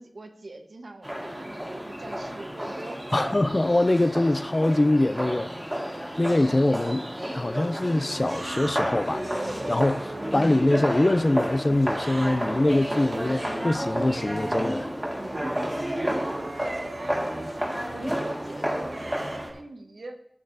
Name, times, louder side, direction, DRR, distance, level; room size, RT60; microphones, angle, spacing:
voice 1, 0.0-3.4 15.9-20.2, right 2 dB, 80° right, 1.1 m, -42 dB
sound 1, 1.0-19.5, equal, 10° right, 1.8 m, -31 dB
voice 2, 3.1-7.1 7.3-14.9, left 1 dB, 35° left, 0.4 m, -24 dB
sound 2, 8.1-19.6, right 2 dB, 55° right, 0.7 m, -38 dB
13.0 x 8.8 x 2.7 m
wide cardioid pair, 65°, 0 cm